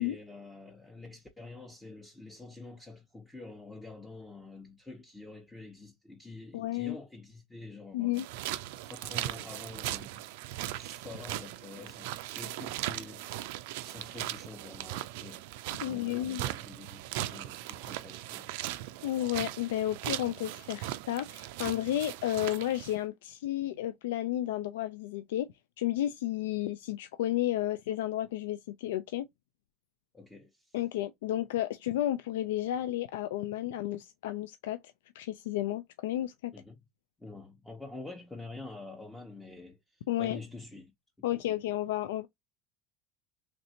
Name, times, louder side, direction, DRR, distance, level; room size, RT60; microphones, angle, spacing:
voice 1, 0.0-8.2 8.8-10.2 10.7-13.2 13.8-15.4 15.8-18.5 30.1-30.7 36.5-36.8 37.2-39.8 40.2-40.9 41.3-41.4, left 3 dB, 10° left, 0.8 m, -47 dB
voice 2, 6.5-7.0 7.9-8.3 15.8-16.4 19.0-29.2 30.7-34.8 35.1-36.5 40.1-40.4 41.2-42.3, left 13 dB, 90° left, 0.3 m, -32 dB
sound 1, 8.1-23.0, right 15 dB, 80° right, 0.3 m, -39 dB
3.2 x 2.5 x 2.8 m
supercardioid pair, 110°, 0 cm